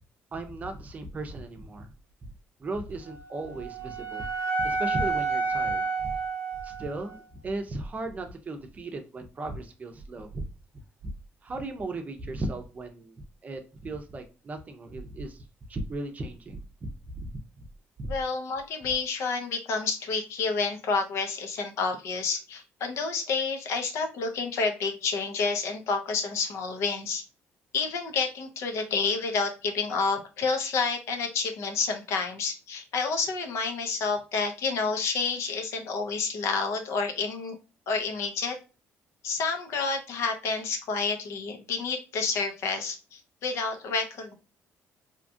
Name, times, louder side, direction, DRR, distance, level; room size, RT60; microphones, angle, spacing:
voice 1, 0.3-1.9 2.6-4.3 4.6-6.1 6.6-7.2 7.4-10.4 11.0-11.1 11.4-13.1 13.4-15.4 15.7-17.3 18.0-18.1, right 2 dB, 30° right, 6 dB, 0.6 m, -36 dB
Wind instrument woodwind instrument, 3.0-7.2, right 4 dB, 90° left, 1.3 m, -30 dB
voice 2, 18.0-27.2 27.7-37.6 37.9-38.6 39.2-44.3, left 4 dB, 75° left, 5 dB, 0.7 m, -29 dB
2.8 x 2.3 x 2.6 m, 0.33 s
cardioid pair, 105°, 5 cm